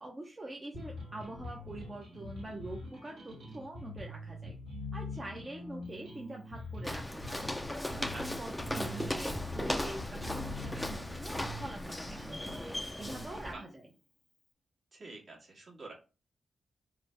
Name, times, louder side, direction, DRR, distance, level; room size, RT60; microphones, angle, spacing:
voice 1, 0.0-4.5 4.9-7.5 7.9-12.6 13.0-13.8, right 2 dB, 35° right, 0 dB, 0.7 m, -45 dB
sound 1, 0.7-13.7, left 2 dB, 80° right, 1.7 m, -44 dB
Walk footsteps, 6.8-13.5, left 1 dB, 10° left, 0.4 m, -37 dB
voice 2, 13.3-13.6 14.9-15.9, right 2 dB, 55° right, -3 dB, 1.6 m, -47 dB
3.2 x 2.1 x 3.2 m, 0.33 s
supercardioid pair, 40°, 0 cm